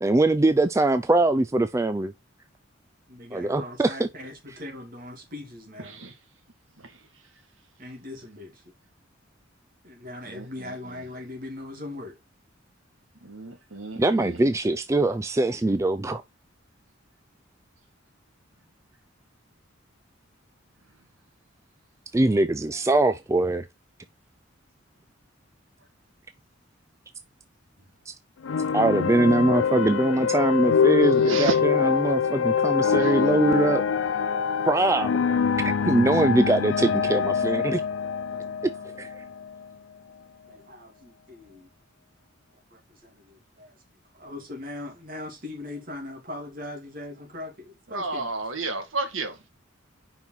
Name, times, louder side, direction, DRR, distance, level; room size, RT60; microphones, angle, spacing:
voice 1, 0.0-2.1 3.3-4.1 14.0-16.2 22.1-23.7 28.1-28.2 28.7-33.8 34.6-35.1 35.6-37.8 39.0-39.2, right 2 dB, 15° right, 0.3 m, -22 dB
voice 2, 3.1-6.0 7.8-8.6 9.8-12.2 38.3-38.9 40.5-41.7 42.7-43.8 44.1-48.3, left 1 dB, 45° right, 2.6 m, -40 dB
voice 3, 10.3-11.0 13.2-14.4 31.3-31.6 33.0-33.1 47.9-49.5, right 3 dB, 80° right, 1.8 m, -32 dB
sound 1, 28.4-39.7, left 6 dB, 85° left, 0.5 m, -24 dB
5.4 x 4.7 x 5.6 m
head